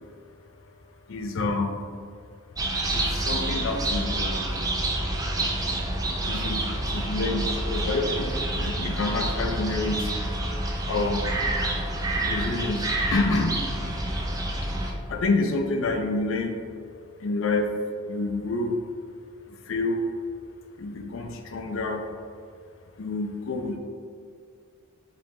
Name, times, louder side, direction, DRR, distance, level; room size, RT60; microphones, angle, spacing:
voice 1, 1.1-1.8 2.9-4.6 6.3-6.6 6.9-10.1 10.9-11.3 12.2-12.8 13.1-13.5 15.1-16.6 17.2-17.7 18.1-18.8 19.7-20.1 20.8-22.0 23.0-23.8, left 2 dB, 65° left, 4 dB, 0.5 m, -28 dB
sound 1, 2.6-14.9, right 1 dB, 15° right, 0.3 m, -28 dB
4.9 x 3.7 x 2.8 m, 2.3 s
head